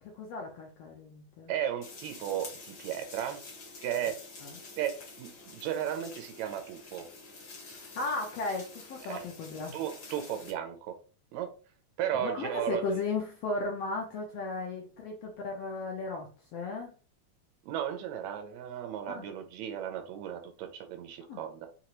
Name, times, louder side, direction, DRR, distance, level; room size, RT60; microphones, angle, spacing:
voice 1, 0.0-1.5 4.4-4.6 7.7-9.8 12.1-16.9 19.1-19.2 21.3-21.4, left 3 dB, 70° left, 0 dB, 1.5 m, -36 dB
voice 2, 1.5-3.4 3.8-4.2 4.8-7.1 9.0-9.2 9.7-11.0 11.3-11.5 12.0-12.8 17.7-21.7, right 10 dB, 75° right, 6 dB, 1.8 m, -35 dB
sound 1, 1.8-10.5, left 3 dB, 50° left, 1.2 m, -48 dB
5.1 x 2.9 x 2.9 m, 0.38 s
omnidirectional pair, 3.6 m